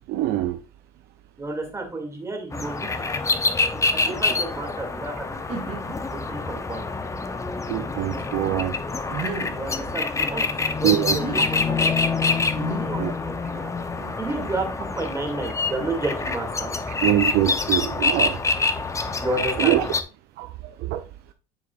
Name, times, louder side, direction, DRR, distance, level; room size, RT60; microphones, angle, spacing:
voice 1, 0.1-0.6 7.7-8.7 10.8-11.2 13.0-13.1 17.0-18.4 19.6-19.9 20.4-20.5 20.8-21.0, right 13 dB, 55° right, 0.5 m, -23 dB
voice 2, 1.4-3.4 3.9-5.6 6.1-6.8 9.5-11.8 12.3-13.7 14.2-16.7 19.2-19.8, right 2 dB, 15° right, 2.4 m, -31 dB
sound 1, 2.5-20.0, left 3 dB, 15° left, 0.7 m, -26 dB
sound 2, 3.9-4.4 5.0-5.1 5.5-6.0 6.7-6.8 9.1-9.6 11.0-11.4 12.6-13.0 14.0-14.8, right 4 dB, 40° right, 2.4 m, -34 dB
9.4 x 4.7 x 2.5 m
supercardioid pair, 95°, 20 cm